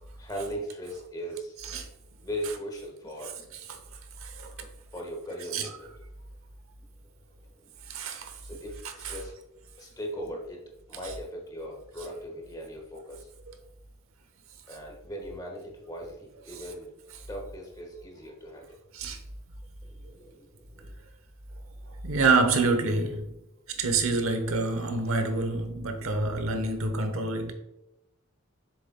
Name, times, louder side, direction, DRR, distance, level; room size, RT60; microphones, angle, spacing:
voice 1, 0.2-1.6 2.2-3.3 4.9-5.9 7.5-7.7 8.4-9.4 9.8-10.6 10.9-13.3 14.7-16.9 17.3-18.8 19.8-20.9 23.7-23.8, equal, 20° left, 1.4 m, -39 dB
voice 2, 3.2-3.8 4.2-4.5 5.5-5.7 7.9-8.4 8.8-9.2 11.0-11.1 13.5-13.6 18.9-19.2 22.0-23.4 23.7-27.5, right 3 dB, 80° right, 0.9 m, -27 dB
7.8 x 6.6 x 2.2 m
head